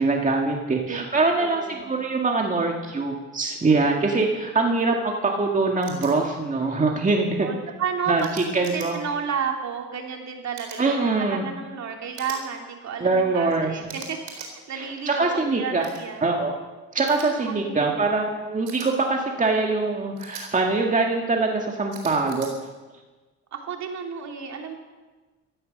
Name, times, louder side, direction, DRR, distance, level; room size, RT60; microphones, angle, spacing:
voice 1, 0.0-7.5 8.1-8.2 8.5-9.0 10.8-11.4 13.0-13.7 14.8-15.9 16.2-16.5 16.9-22.7, right 3 dB, 25° right, 1 dB, 1.9 m, -23 dB
voice 2, 0.9-1.9 4.7-5.0 7.4-16.3 17.2-18.4 23.5-24.7, right 6 dB, 65° right, 2 dB, 3.0 m, -32 dB
sound 1, 5.8-6.1 8.2-8.9 10.5-10.8 12.1-12.4 13.9-14.5 15.8-16.0 17.1-17.3 18.7-18.9 20.2-20.5 21.9-22.5, right 6 dB, 90° right, 4.3 m, -40 dB
15.5 x 13.5 x 6.5 m, 1.3 s
cardioid pair, 90°, 30 cm